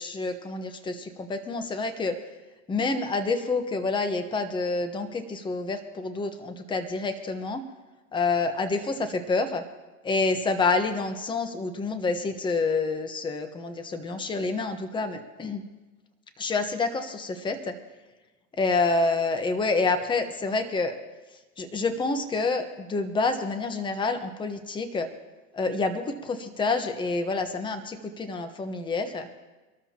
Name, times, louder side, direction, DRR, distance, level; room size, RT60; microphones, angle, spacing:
voice 1, 0.0-2.2 2.7-7.6 8.1-9.6 10.0-15.6 16.4-17.8 18.6-20.9 21.6-25.1 25.5-29.3, left 3 dB, 10° left, 7 dB, 1.1 m, -28 dB
25.5 x 13.0 x 2.9 m, 1.2 s
hypercardioid pair, 125°, 45 cm